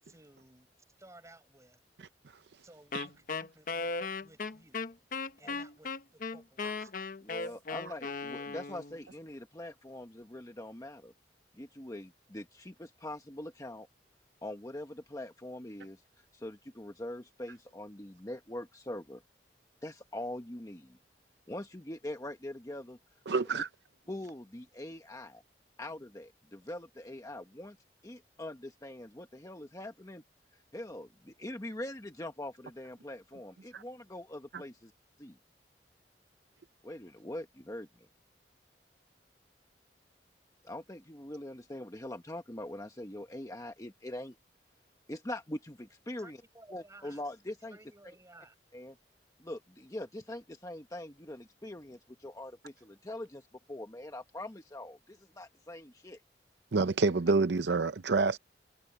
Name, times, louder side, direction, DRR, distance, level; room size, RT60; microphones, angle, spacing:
voice 1, 0.0-0.7 1.0-1.8 2.6-3.9 4.2-4.8 5.4-7.0 46.2-47.2 47.7-48.6, right 2 dB, 20° right, 7.2 m, -57 dB
Wind instrument woodwind instrument, 2.9-9.0, left 4 dB, 50° left, 0.9 m, -37 dB
voice 2, 7.2-11.1 11.5-13.9 14.4-16.0 16.3-19.2 19.8-21.0 21.5-23.0 23.5-23.6 24.1-25.4 25.8-27.8 28.0-30.2 30.7-34.9 35.2-35.3 36.8-38.1 40.6-44.4 45.1-46.4 46.7-47.8 48.7-48.9 49.4-56.2, left 1 dB, 20° left, 1.2 m, -43 dB
voice 3, 23.3-23.7 33.7-33.8 34.5-34.6 56.7-58.4, right 4 dB, 75° right, 0.6 m, -27 dB
head